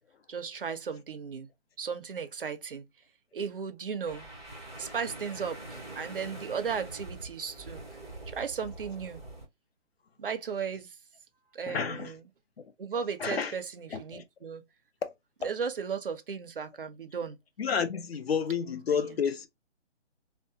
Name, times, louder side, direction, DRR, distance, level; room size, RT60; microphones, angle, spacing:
voice 1, 0.3-1.5 1.8-2.9 3.3-4.3 4.8-7.8 8.3-9.2 10.2-11.0 11.5-12.3 12.8-14.6 15.4-17.4 18.9-19.2, right 6 dB, 50° right, 0.4 m, -35 dB
sound 1, 4.0-9.4, right 2 dB, 15° left, 0.6 m, -44 dB
voice 2, 11.7-12.1 13.2-13.5 13.9-14.2 15.0-15.1 17.6-19.5, left 6 dB, 55° left, 0.6 m, -30 dB
2.7 x 2.1 x 2.6 m
hypercardioid pair, 175°, 36 cm